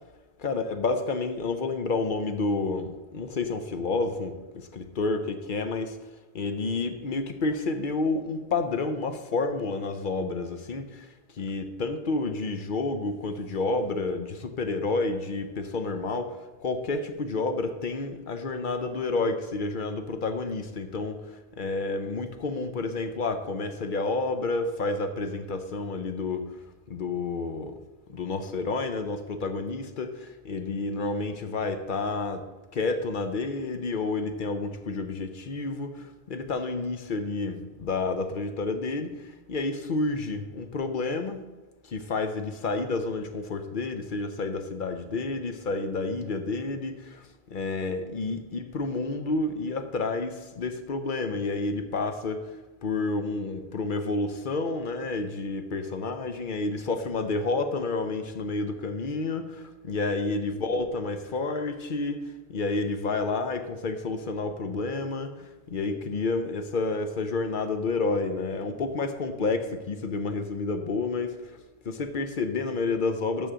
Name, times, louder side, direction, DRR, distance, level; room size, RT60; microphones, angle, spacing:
voice 1, 0.4-6.0 6.3-26.5 26.9-27.8 28.1-32.5 32.7-41.5 41.8-52.5 52.8-71.6 71.8-73.5, left 3 dB, 55° left, 8 dB, 0.8 m, -30 dB
6.3 x 6.3 x 6.8 m, 1.2 s
omnidirectional pair, 1.0 m